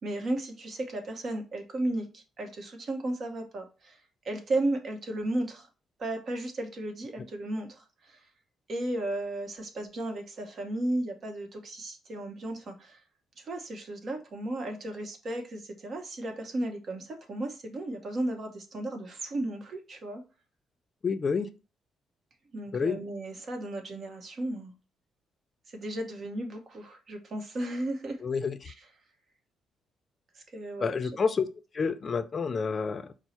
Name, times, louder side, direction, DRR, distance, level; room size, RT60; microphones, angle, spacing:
voice 1, 0.0-4.0 4.2-5.7 6.0-8.3 8.7-13.0 13.4-20.2 22.5-24.7 25.7-28.2 28.7-28.8 30.3-30.9, right 1 dB, 50° right, 0.9 m, -34 dB
voice 2, 21.0-21.5 22.7-23.0 28.2-28.6 30.8-31.5 31.7-33.1, left 5 dB, 40° left, 0.4 m, -29 dB
4.5 x 2.0 x 4.1 m
cardioid pair, 90°, 0 cm